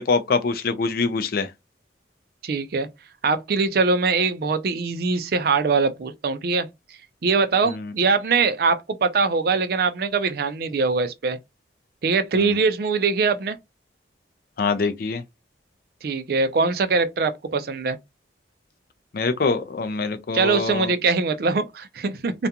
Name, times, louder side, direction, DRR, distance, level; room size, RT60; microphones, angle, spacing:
voice 1, 0.0-1.5 7.7-7.9 12.3-12.6 14.6-15.2 19.1-20.9, left 4 dB, 55° left, 0.4 m, -24 dB
voice 2, 2.4-2.9 3.2-6.7 7.2-11.4 12.0-13.6 16.0-18.0 20.3-22.3, right 4 dB, 55° right, 0.4 m, -22 dB
2.5 x 2.2 x 2.7 m
head